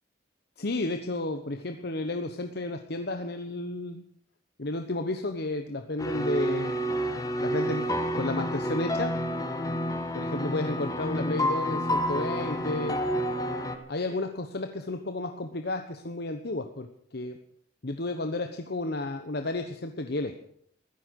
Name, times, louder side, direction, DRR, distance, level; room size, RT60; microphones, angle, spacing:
voice 1, 0.6-4.1 4.6-6.7 7.4-7.9 8.1-9.2 10.1-13.0 13.9-17.4 17.8-20.4, left 2 dB, 65° left, 6 dB, 1.1 m, -32 dB
sound 1, 6.0-13.8, equal, 20° left, 1.7 m, -29 dB
15.5 x 13.5 x 6.5 m, 0.66 s
head